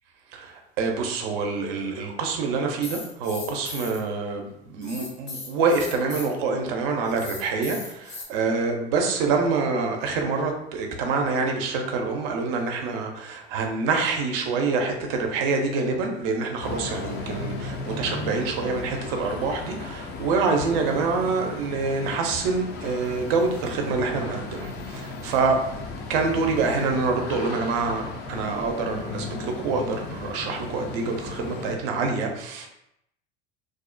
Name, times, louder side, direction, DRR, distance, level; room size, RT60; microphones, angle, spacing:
voice 1, 0.8-25.6 26.1-32.7, right 4 dB, 65° right, 3 dB, 0.6 m, -26 dB
sound 1, 2.8-4.0 4.8-6.3 7.0-8.2, left 3 dB, 85° left, 0.9 m, -37 dB
sound 2, 16.6-31.8, left 3 dB, 35° left, 0.4 m, -35 dB
2.5 x 2.0 x 2.5 m, 0.81 s
hypercardioid pair, 75°, 31 cm